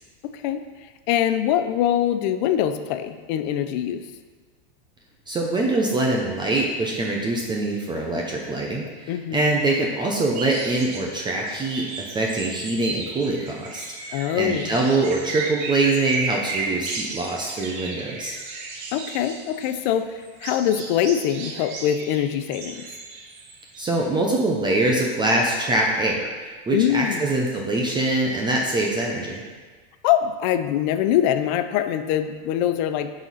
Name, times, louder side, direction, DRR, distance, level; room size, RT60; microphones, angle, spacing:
voice 1, 0.2-0.7 1.1-4.1 9.1-9.5 14.1-14.8 18.9-22.9 26.7-27.2 30.0-33.1, left 10 dB, 50° left, 10 dB, 0.6 m, -23 dB
voice 2, 5.3-18.4 23.8-29.4, right 2 dB, 15° right, -1 dB, 0.7 m, -24 dB
sound 1, 10.3-11.1 11.5-19.9 20.2-24.0, right 4 dB, 50° right, 1.3 m, -34 dB
10.5 x 4.2 x 4.1 m, 1.4 s
supercardioid pair, 145°, 31 cm